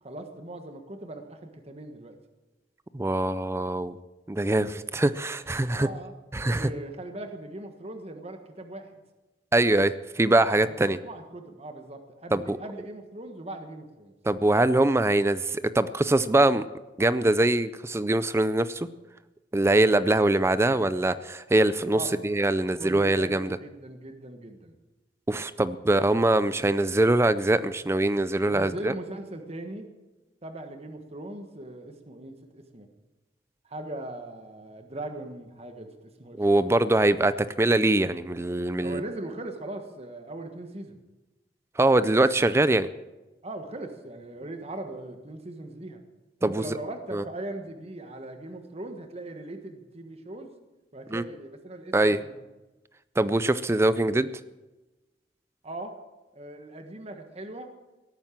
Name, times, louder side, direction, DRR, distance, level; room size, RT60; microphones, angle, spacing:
voice 1, 0.0-2.2 5.7-6.1 6.4-8.9 10.6-14.1 21.9-22.2 22.7-24.7 28.4-29.9 30.4-32.9 33.6-36.8 38.8-41.0 43.4-46.0 46.4-50.5 50.9-52.4 55.6-55.9 56.3-57.7, right 1 dB, 35° right, 6 dB, 1.4 m, -40 dB
voice 2, 2.9-4.0 4.3-5.9 6.3-6.7 9.5-11.0 12.3-12.6 14.2-16.7 17.0-18.9 19.5-23.6 25.3-28.9 36.4-39.0 41.8-42.9 46.4-46.6 47.1-47.2 51.1-51.2 51.9-52.2 53.2-54.3, right 2 dB, 15° right, 14 dB, 0.4 m, -23 dB
17.5 x 9.0 x 7.5 m, 1.1 s
head